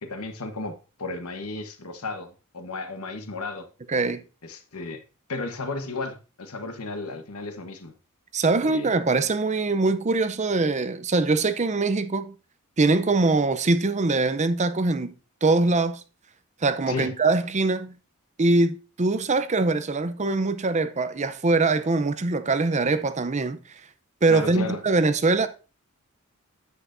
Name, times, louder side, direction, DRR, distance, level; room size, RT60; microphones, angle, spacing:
voice 1, 0.0-3.7 4.4-5.0 5.3-7.9 8.6-8.9 16.9-17.1 24.3-24.8, left 3 dB, 85° left, 1.2 m, -34 dB
voice 2, 3.9-4.2 8.3-12.3 12.8-15.1 15.4-16.0 16.6-17.9 18.4-23.6 24.2-25.5, right 3 dB, 35° right, 0.6 m, -23 dB
9.4 x 8.1 x 2.6 m
head